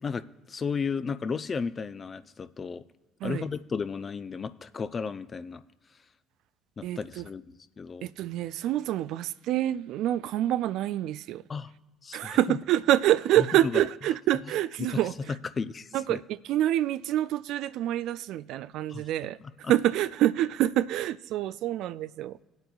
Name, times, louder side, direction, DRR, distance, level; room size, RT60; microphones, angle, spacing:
voice 1, 0.0-2.8 3.2-5.6 6.8-8.1 11.5-11.7 12.0-12.6 13.4-13.7 14.8-14.9 15.6-16.2 18.9-19.0 19.6-19.7, left 5 dB, 40° left, 0.5 m, -34 dB
voice 2, 6.8-7.2 8.0-11.4 12.1-15.3 15.9-22.4, right 13 dB, 70° right, 0.3 m, -27 dB
18.5 x 8.0 x 2.4 m
hypercardioid pair, 60°, 0 cm